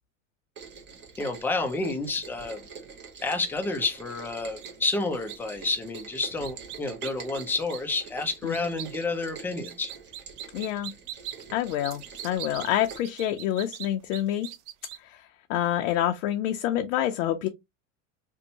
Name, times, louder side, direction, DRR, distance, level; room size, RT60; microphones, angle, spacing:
Rain, 0.5-13.0, right 6 dB, 30° right, 0.7 m, -45 dB
voice 1, 1.2-2.6 3.2-9.9, left 3 dB, 5° left, 0.3 m, -30 dB
sound 1, 4.6-5.0 5.3-5.4 5.7-8.9 9.6-15.0, right 12 dB, 60° right, 0.5 m, -40 dB
voice 2, 10.5-10.9 11.5-14.5 15.0-17.5, left 12 dB, 70° left, 0.5 m, -27 dB
2.6 x 2.1 x 2.7 m
supercardioid pair, 110°, 39 cm